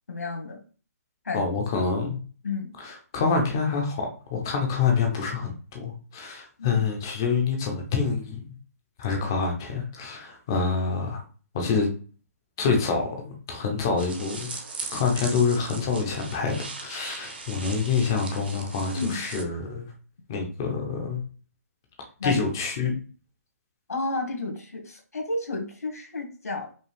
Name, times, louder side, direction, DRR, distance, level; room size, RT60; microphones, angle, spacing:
voice 1, 0.1-0.6 1.2-1.5 2.4-2.7 6.6-6.8 18.9-19.2 22.2-22.4 23.9-26.7, left 3 dB, 70° left, 2 dB, 1.6 m, -31 dB
voice 2, 1.3-2.2 2.8-8.4 9.0-11.2 11.5-11.9 12.6-14.6 14.9-19.9 20.3-21.2 22.2-22.9, left 5 dB, 15° left, 3 dB, 0.5 m, -26 dB
sound 1, 14.0-19.4, right 4 dB, 35° right, 0.7 m, -39 dB
5.2 x 2.2 x 3.4 m, 0.38 s
hypercardioid pair, 180°, 9 cm